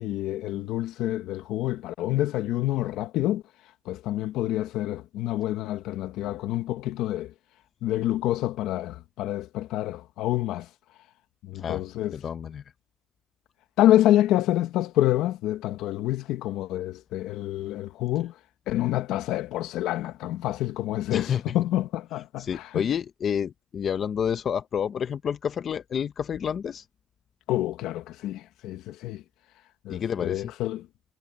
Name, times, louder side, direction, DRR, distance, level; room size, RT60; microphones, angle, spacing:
voice 1, 0.0-3.4 3.8-7.3 7.8-10.7 11.4-12.2 13.8-18.3 18.7-22.8 27.5-29.2 29.8-30.9, left 14 dB, 80° left, 1.4 m, -27 dB
voice 2, 12.1-12.6 21.1-21.6 22.4-26.8 29.9-30.5, left 8 dB, 40° left, 0.8 m, -29 dB
cardioid pair, 145°, 0 cm